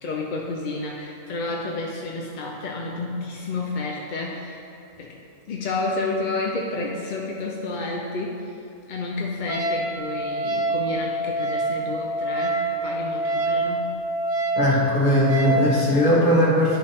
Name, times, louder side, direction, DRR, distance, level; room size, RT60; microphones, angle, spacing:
voice 1, 0.0-4.7 5.0-5.2 5.5-8.5 8.9-13.9, left 3 dB, 50° left, -1 dB, 0.6 m, -30 dB
Wind instrument woodwind instrument, 9.5-15.6, right 2 dB, 75° right, 1.4 m, -26 dB
voice 2, 14.6-16.8, equal, 35° left, -7 dB, 1.9 m, -19 dB
11.0 x 5.5 x 3.5 m, 2.7 s
omnidirectional pair, 1.3 m